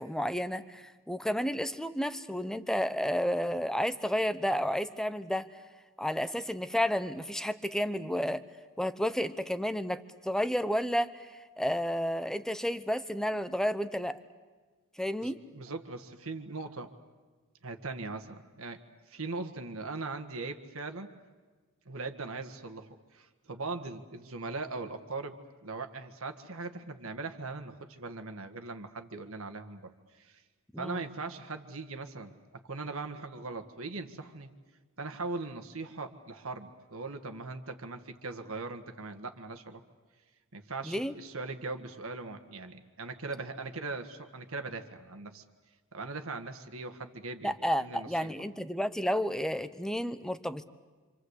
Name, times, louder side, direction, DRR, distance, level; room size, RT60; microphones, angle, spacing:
voice 1, 0.0-5.5 6.0-8.4 8.8-11.3 11.6-14.2 15.0-15.4 30.7-31.0 40.8-41.1 47.4-50.6, equal, 5° left, 12 dB, 0.8 m, -31 dB
voice 2, 15.2-16.9 17.6-21.1 21.9-29.9 30.2-30.4 30.8-34.5 35.0-39.8 40.5-45.4 45.9-48.3, right 3 dB, 70° right, 7 dB, 1.8 m, -40 dB
27.5 x 26.5 x 8.2 m, 1.3 s
head